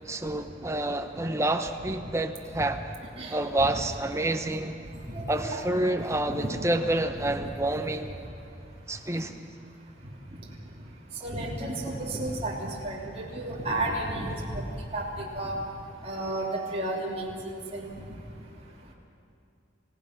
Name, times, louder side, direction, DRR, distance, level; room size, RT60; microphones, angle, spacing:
voice 1, 0.1-2.9 3.3-4.8 5.3-8.2 8.9-9.4, right 1 dB, 15° right, 6 dB, 0.9 m, -28 dB
voice 2, 5.1-5.6 6.3-6.5 7.1-7.2 11.2-14.6 14.9-15.6 16.0-17.3 17.7-17.9, right 1 dB, 30° right, -4 dB, 3.1 m, -32 dB
28.5 x 16.0 x 6.1 m, 2.7 s
head